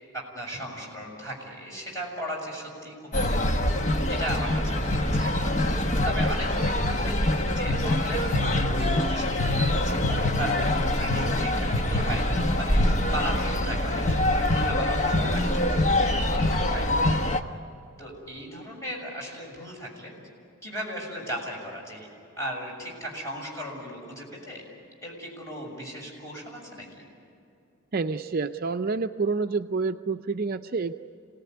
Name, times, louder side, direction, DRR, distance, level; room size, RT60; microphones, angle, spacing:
voice 1, 0.1-3.8 4.1-17.2 18.0-20.1 20.6-22.1 22.4-24.6 25.0-27.0, right 1 dB, 15° left, -2 dB, 6.7 m, -37 dB
sound 1, 3.1-17.4, left 1 dB, 35° left, 1.2 m, -24 dB
voice 2, 27.9-30.9, right 4 dB, 45° right, 7 dB, 0.5 m, -28 dB
27.5 x 18.5 x 9.6 m, 2.5 s
head